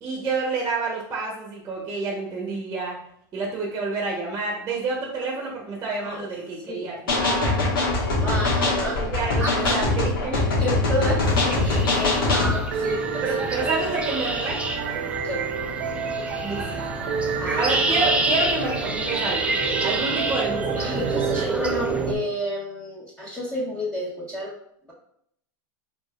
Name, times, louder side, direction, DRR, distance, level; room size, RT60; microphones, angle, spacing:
voice 1, 0.0-3.0 3.3-7.6 9.1-10.4 11.9-12.3 13.2-14.8 16.4-16.8 17.6-19.5 19.8-20.7, right 3 dB, 25° right, -1 dB, 1.1 m, -29 dB
sound 1, 7.1-12.6, left 2 dB, 80° left, 1.6 m, -22 dB
voice 2, 8.2-9.1 9.4-9.7 10.3-13.7 15.2-15.4 17.4-17.7 20.8-24.5, equal, 10° left, -10 dB, 1.4 m, -31 dB
sound 2, 11.2-22.1, right 2 dB, 10° right, 0.6 m, -28 dB
sound 3, 12.7-21.4, right 6 dB, 70° right, 0.6 m, -30 dB
4.7 x 3.5 x 2.4 m, 0.72 s
hypercardioid pair, 115°, 11 cm